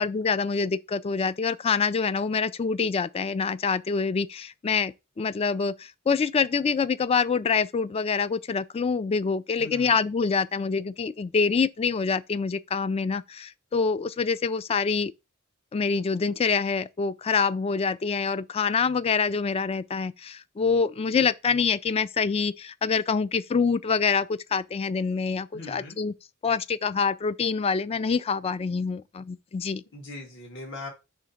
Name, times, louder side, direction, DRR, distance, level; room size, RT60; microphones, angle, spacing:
voice 1, 0.0-15.1 15.7-26.1 26.4-29.8, left 5 dB, 30° left, 0.3 m, -26 dB
voice 2, 9.6-10.0 25.5-26.0 29.9-30.9, left 2 dB, 60° left, 1.9 m, -40 dB
5.1 x 3.6 x 5.7 m
head